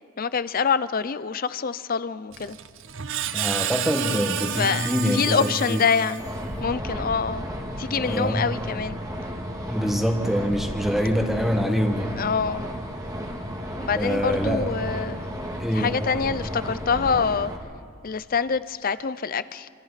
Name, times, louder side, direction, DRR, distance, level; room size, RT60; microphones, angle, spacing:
voice 1, 0.2-2.6 4.6-6.3 6.6-7.5 7.8-9.0 12.2-12.7 13.8-15.2 15.7-17.5 18.0-19.7, left 5 dB, 45° left, 0.6 m, -25 dB
Screech, 2.3-6.6, right 10 dB, 60° right, 0.8 m, -31 dB
voice 2, 3.3-5.8 8.0-8.5 9.6-12.2 14.0-14.7 15.6-15.9, equal, ahead, 1.7 m, -25 dB
sound 1, 6.2-17.6, equal, 15° right, 1.9 m, -33 dB
26.0 x 26.0 x 4.2 m
head